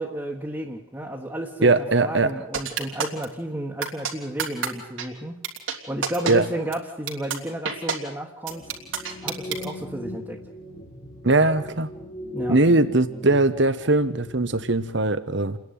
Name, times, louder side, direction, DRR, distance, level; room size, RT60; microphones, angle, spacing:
voice 1, 0.0-5.4 5.9-8.7 9.2-10.4 12.3-12.6, right 1 dB, 10° right, 1.5 m, -32 dB
voice 2, 1.6-2.3 6.3-6.4 11.2-11.9 12.5-15.6, right 2 dB, 60° right, 1.2 m, -20 dB
sound 1, 2.5-3.2 3.8-4.1 4.4-4.7 5.0-5.1 5.4-5.7 6.0-6.3 6.7-6.8 7.1-7.4 7.6-8.0 8.5-9.6, right 6 dB, 75° right, 3.2 m, -27 dB
sound 2, 8.5-14.9, left 1 dB, 35° left, 1.9 m, -39 dB
29.5 x 10.5 x 9.4 m
head